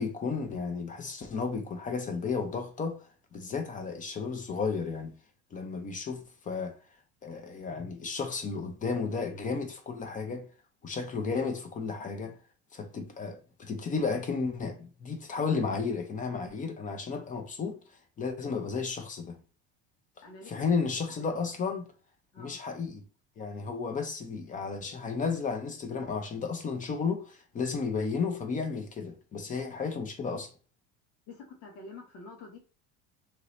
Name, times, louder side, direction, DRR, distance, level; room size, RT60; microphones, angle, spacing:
voice 1, 0.0-3.1 3.3-5.1 5.5-6.8 7.2-10.5 10.8-12.4 12.7-17.8 18.2-19.4 20.5-21.9 22.4-23.0 23.4-30.5, left 5 dB, 25° left, 0.5 m, -33 dB
voice 2, 20.2-20.5 22.3-22.6 31.3-32.6, left 3 dB, 85° left, 1.2 m, -47 dB
2.9 x 2.5 x 3.1 m
cardioid pair, 135°, 33 cm